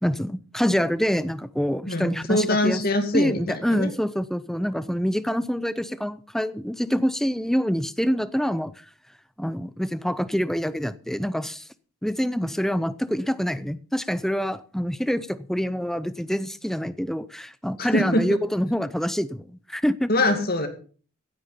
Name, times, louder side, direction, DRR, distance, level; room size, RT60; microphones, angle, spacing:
voice 1, 0.0-2.8 3.1-8.7 9.4-11.7 12.0-20.1, equal, ahead, 15 dB, 0.5 m, -26 dB
voice 2, 1.9-3.9 17.8-18.2 20.1-20.7, left 1 dB, 45° left, 7 dB, 2.3 m, -23 dB
16.0 x 8.9 x 5.6 m, 0.41 s
head